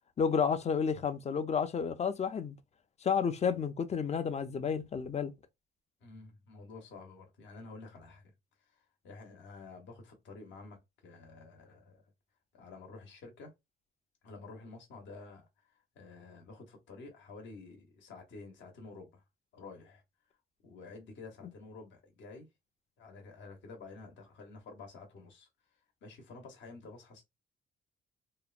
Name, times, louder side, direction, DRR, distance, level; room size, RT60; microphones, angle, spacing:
voice 1, 0.2-2.6 3.0-5.3, left 6 dB, 35° left, 0.4 m, -31 dB
voice 2, 6.0-8.3 8.6-12.0 12.5-13.5 14.2-19.2 19.5-20.0 20.6-22.5 23.0-25.5 26.0-27.2, left 3 dB, 70° left, 1.0 m, -50 dB
2.9 x 2.1 x 2.4 m
cardioid pair, 90°, 20 cm